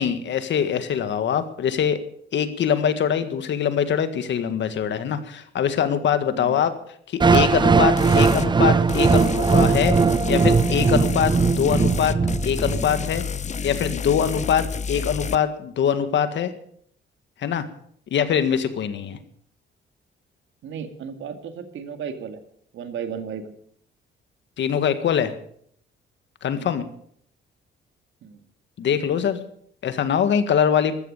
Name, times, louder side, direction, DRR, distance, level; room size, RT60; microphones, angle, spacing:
voice 1, 0.0-2.0 2.3-6.7 7.1-10.0 10.3-12.2 12.4-13.2 13.6-16.5 17.4-17.7 18.1-19.2 24.6-25.3 26.4-26.9 28.8-29.5 29.8-31.0, left 8 dB, 65° left, 10 dB, 1.8 m, -23 dB
sound 1, 7.2-13.2, right 4 dB, 20° right, 0.6 m, -19 dB
sound 2, 8.0-8.5 8.9-15.4, left 6 dB, 35° left, 0.8 m, -30 dB
voice 2, 20.6-22.4 22.7-23.6 26.6-26.8 28.2-28.4, right 7 dB, 75° right, 7 dB, 2.3 m, -34 dB
14.0 x 13.0 x 6.7 m, 0.63 s
cardioid pair, 90°, 20 cm